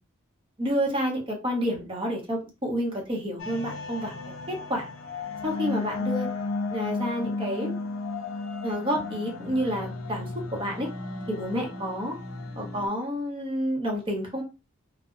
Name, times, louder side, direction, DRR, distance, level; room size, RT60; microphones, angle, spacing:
voice 1, 0.6-4.1 4.5-4.9 5.4-6.3 6.7-7.7 8.6-10.9 11.3-12.1 12.6-14.4, equal, 25° right, 0 dB, 0.7 m, -29 dB
sound 1, 3.4-12.9, left 3 dB, 80° left, 0.5 m, -34 dB
2.5 x 2.0 x 2.4 m, 0.29 s
head